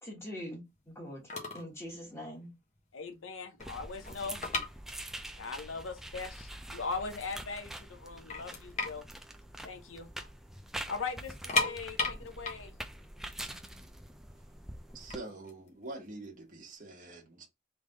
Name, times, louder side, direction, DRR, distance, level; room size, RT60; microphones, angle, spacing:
voice 1, 0.0-2.5, equal, 15° left, 1.8 m, -43 dB
sound 1, 1.0-1.1 1.3-1.7 2.0-2.2 2.8-2.9 3.1-5.4 5.7-5.8 6.4-6.5 6.8-7.6 7.9-8.0 8.3-10.3 10.6-10.7 11.3-14.2 14.9-16.6, left 3 dB, 35° left, 1.1 m, -35 dB
voice 2, 2.9-4.4 5.4-9.1 9.6-10.1 10.9-12.8, left 4 dB, 90° left, 0.8 m, -40 dB
sound 2, 3.6-15.2, right 1 dB, ahead, 0.3 m, -45 dB
voice 3, 14.9-17.5, right 2 dB, 40° right, 1.1 m, -45 dB
3.6 x 3.4 x 3.9 m
head